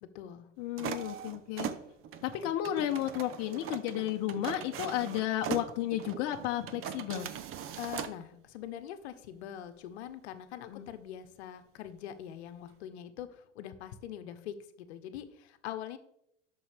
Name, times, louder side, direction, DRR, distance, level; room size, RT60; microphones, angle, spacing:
voice 1, 0.0-0.5 7.8-16.0, left 10 dB, 65° left, 10 dB, 1.1 m, -43 dB
voice 2, 0.6-1.7 2.2-7.3 10.6-10.9, left 12 dB, 45° left, 5 dB, 0.9 m, -33 dB
sound 1, 0.8-8.2, right 9 dB, 35° right, 0.9 m, -40 dB
13.0 x 6.3 x 3.5 m, 0.76 s
hypercardioid pair, 90°, 36 cm